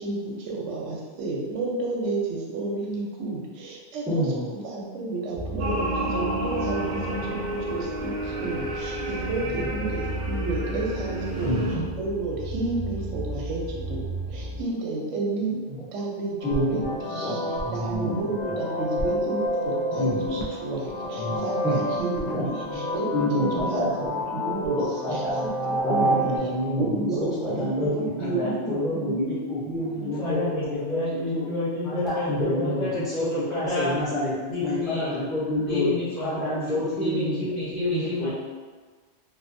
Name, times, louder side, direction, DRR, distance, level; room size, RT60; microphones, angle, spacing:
voice 1, 0.0-4.2 4.5-7.4 7.7-13.6 13.9-14.0 14.3-17.4 17.7-19.4 19.6-23.6 24.1-24.8 25.1-26.3 26.8-29.2 30.0-30.1, right 3 dB, 85° right, -2 dB, 0.9 m, -31 dB
voice 2, 4.2-4.5 9.4-9.7 28.2-28.5 30.2-34.0 34.5-35.2 35.7-38.3, left 2 dB, 45° left, -10 dB, 0.7 m, -30 dB
sound 1, 5.3-14.6, right 1 dB, 90° left, 1.0 m, -34 dB
sound 2, 5.6-11.8, right 1 dB, 60° right, 0.5 m, -31 dB
voice 3, 11.4-11.9 15.8-15.9 16.4-18.6 19.9-20.4 21.1-21.8 22.2-22.8 23.1-24.1 24.8-25.3 25.8-28.4 28.7-31.0 31.3-31.5 31.8-34.3 34.6-35.9 36.2-37.5 37.7-38.3, left 1 dB, ahead, -10 dB, 0.6 m, -28 dB
sound 3, 16.4-26.4, equal, 65° left, 0.4 m, -29 dB
2.6 x 2.2 x 2.5 m, 1.4 s
omnidirectional pair, 1.3 m